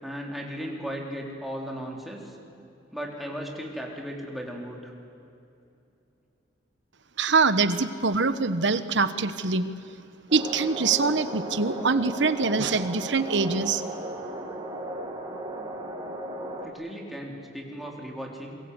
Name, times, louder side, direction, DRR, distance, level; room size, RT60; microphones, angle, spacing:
voice 1, 0.0-2.4 2.9-4.9 16.6-18.6, equal, ahead, -1 dB, 3.5 m, -36 dB
voice 2, 7.2-9.7 10.3-13.8, right 4 dB, 65° right, 12 dB, 1.2 m, -24 dB
sound 1, 10.3-16.7, right 1 dB, 25° right, 3.1 m, -36 dB
27.0 x 23.0 x 8.2 m, 2.7 s
head